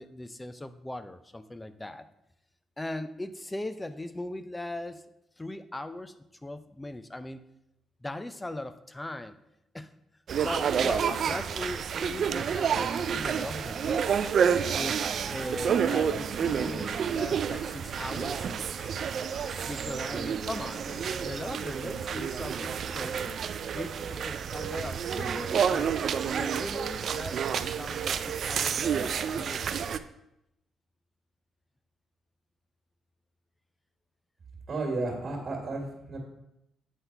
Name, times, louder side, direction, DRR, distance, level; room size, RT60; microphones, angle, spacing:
voice 1, 0.0-2.1 2.8-5.1 5.4-6.1 6.4-7.4 8.0-9.4 9.7-9.9 10.3-14.3 14.7-18.5 19.6-23.4 23.7-25.9 26.3-29.9, left 1 dB, 15° left, 11 dB, 0.5 m, -39 dB
sound 1, 10.3-30.0, right 7 dB, 60° right, 0.4 m, -29 dB
Scratching (performance technique), 16.4-17.0 17.5-17.6 17.9-19.0 19.3-20.0, left 1 dB, 35° left, 1.8 m, -49 dB
voice 2, 34.7-36.2, right 2 dB, 45° right, 0 dB, 1.8 m, -33 dB
8.1 x 4.0 x 4.5 m, 0.83 s
cardioid pair, 90°, 0 cm